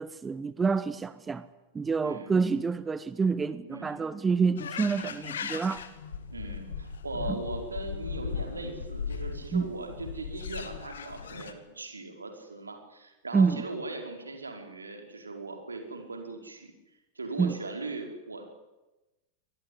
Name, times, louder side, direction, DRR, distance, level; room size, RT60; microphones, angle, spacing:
voice 1, 0.0-1.5 1.7-5.9 9.5-9.6 13.3-13.6 17.4-17.6, right 5 dB, 15° right, 1.0 m, -27 dB
voice 2, 2.0-2.3 3.6-4.0 5.0-5.2 6.3-16.7 17.1-18.5, right 3 dB, 75° right, 5.0 m, -39 dB
sound 1, 4.6-11.5, left 6 dB, 65° left, 2.4 m, -38 dB
24.5 x 20.0 x 10.0 m
figure-of-eight pair, 90°, 0 cm